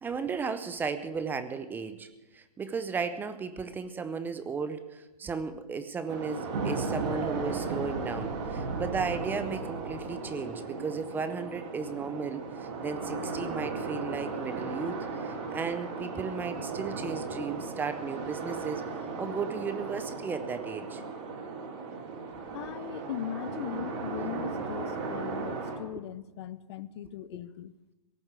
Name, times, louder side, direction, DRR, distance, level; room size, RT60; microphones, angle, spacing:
voice 1, 0.0-2.1 2.3-18.8 19.2-21.0, right 5 dB, 10° right, 11 dB, 0.6 m, -35 dB
sound 1, 6.1-25.8, right 4 dB, 45° right, 3.6 m, -37 dB
sound 2, 6.5-10.2, right 3 dB, 80° right, 2.3 m, -35 dB
voice 2, 22.5-27.8, left 11 dB, 45° left, 17 dB, 0.6 m, -39 dB
18.0 x 7.2 x 8.0 m, 1.0 s
hypercardioid pair, 140°, 20 cm